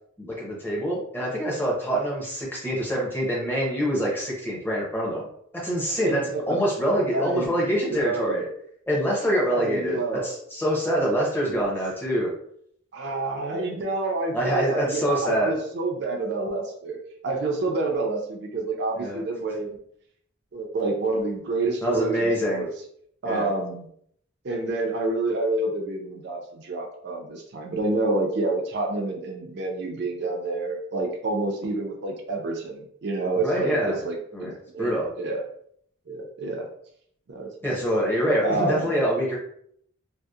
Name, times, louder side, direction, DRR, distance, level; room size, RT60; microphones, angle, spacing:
voice 1, 0.2-5.2 5.5-8.4 8.9-12.3 14.3-15.5 19.0-19.2 21.8-22.6 23.2-23.5 33.4-34.0 34.3-35.1 37.6-39.4, equal, 10° left, -4 dB, 0.6 m, -25 dB
voice 2, 6.0-8.5 9.5-10.3 11.4-11.6 12.9-19.8 20.5-22.7 23.2-23.9 24.4-35.4 36.1-36.7 37.3-37.5 37.8-38.0 38.4-38.9, right 2 dB, 55° right, 2 dB, 0.4 m, -28 dB
2.7 x 2.0 x 2.3 m, 0.67 s
head